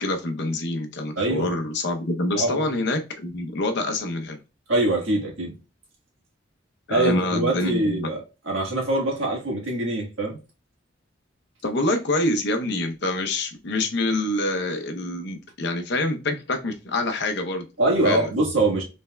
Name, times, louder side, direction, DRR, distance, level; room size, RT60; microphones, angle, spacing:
voice 1, 0.0-4.4 6.9-8.1 11.6-17.7 18.0-18.2, left 2 dB, 60° left, 0.7 m, -26 dB
voice 2, 1.2-1.5 2.3-2.7 4.7-5.6 6.9-10.4 17.8-18.8, right 2 dB, 75° right, 1.4 m, -24 dB
5.6 x 3.3 x 2.2 m
head